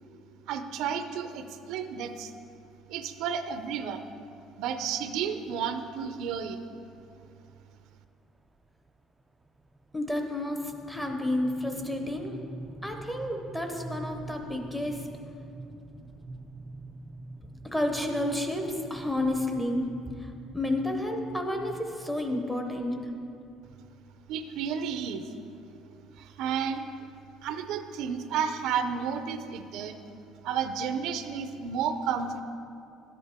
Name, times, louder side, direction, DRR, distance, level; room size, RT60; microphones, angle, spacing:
voice 1, 0.5-2.3 2.9-4.0 4.6-6.6 24.3-25.3 26.2-26.9 27.4-30.0 30.4-32.4, right 7 dB, 65° right, 8 dB, 0.5 m, -32 dB
sound 1, 6.4-6.5 6.9-7.0 7.3-7.6 8.0-24.3, right 2 dB, 10° right, 0.3 m, -46 dB
voice 2, 9.9-12.4 12.8-15.1 17.7-19.8 20.2-20.3 20.5-22.9, left 1 dB, 5° left, 3 dB, 0.7 m, -30 dB
12.0 x 8.7 x 3.5 m, 2.6 s
cardioid pair, 160°, 0 cm